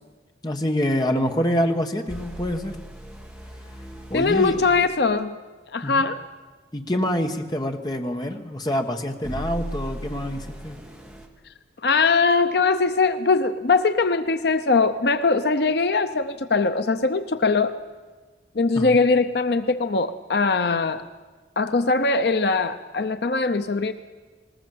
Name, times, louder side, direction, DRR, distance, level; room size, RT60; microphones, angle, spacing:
voice 1, 0.4-2.8 4.1-4.5 5.8-6.0 6.7-10.8 18.7-19.0, equal, 20° left, 4 dB, 1.3 m, -26 dB
sound 1, 2.1-4.9 9.2-11.3, equal, 5° right, 1.9 m, -37 dB
voice 2, 4.1-5.4 5.7-6.2 11.8-17.8 18.6-21.0 21.6-23.9, left 4 dB, 65° left, 10 dB, 0.7 m, -21 dB
19.5 x 19.5 x 7.8 m, 1.3 s
head